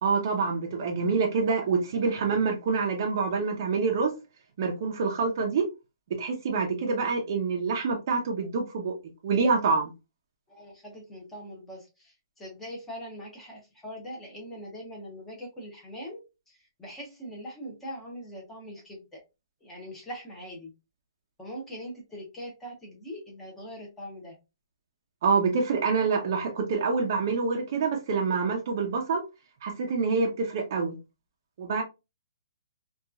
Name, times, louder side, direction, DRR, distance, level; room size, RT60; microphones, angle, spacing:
voice 1, 0.0-4.1 4.6-5.6 6.2-8.9 9.2-9.9 25.2-29.2 29.6-31.0 31.6-31.8, right 4 dB, 35° right, 0.5 m, -26 dB
voice 2, 10.5-16.2 16.8-19.0 19.6-20.7 21.4-24.3, equal, 5° left, 0.7 m, -42 dB
2.8 x 2.3 x 2.3 m
hypercardioid pair, 170°, 3 cm